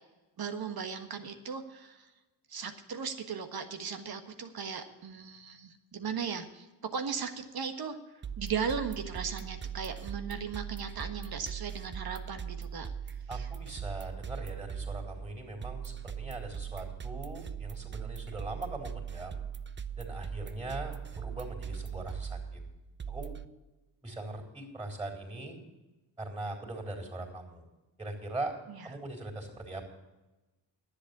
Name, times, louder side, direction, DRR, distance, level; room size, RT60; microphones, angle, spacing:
voice 1, 0.4-2.1 2.5-6.7 6.9-8.0 8.4-12.9 13.3-13.5 28.7-28.9, right 6 dB, 50° right, 7 dB, 1.5 m, -37 dB
sound 1, 8.2-23.5, right 7 dB, 25° right, 0.6 m, -40 dB
voice 2, 13.3-19.4 20.0-22.6 23.1-23.3 24.0-25.6 26.2-27.6 28.0-28.6 28.8-29.8, right 2 dB, 10° right, 2 dB, 3.9 m, -40 dB
10.5 x 8.1 x 8.4 m, 1.1 s
supercardioid pair, 70°, 46 cm